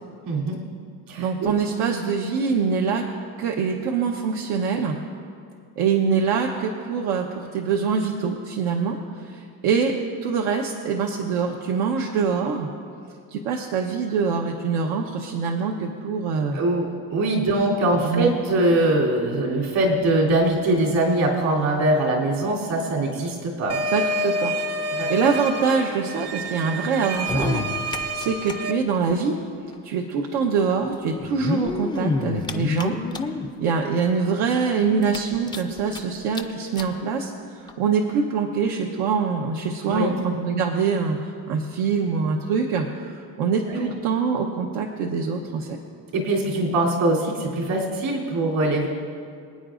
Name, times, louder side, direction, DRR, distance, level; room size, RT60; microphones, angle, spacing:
voice 1, 0.2-0.6 1.1-1.5 16.5-23.8 24.9-25.3 39.9-40.1 43.7-43.9 46.1-48.9, right 1 dB, 65° right, -3 dB, 3.2 m, -22 dB
voice 2, 1.2-3.1 3.4-5.0 5.8-9.9 10.2-12.7 13.3-16.6 17.9-18.3 23.9-29.4 29.8-33.0 33.6-45.8, right 5 dB, 85° right, 1 dB, 1.1 m, -24 dB
sound 1, 23.7-28.7, equal, 40° right, 0.6 m, -28 dB
sound 2, 27.1-28.5 28.8-28.9 29.1-29.2 30.2-30.3 31.2-33.5 34.1-34.2 34.5-34.6 35.0-36.0 36.3-36.4 36.8-36.9 37.7-37.8, left 4 dB, 10° left, 0.4 m, -27 dB
26.0 x 9.2 x 2.5 m, 2.3 s
cardioid pair, 140°, 38 cm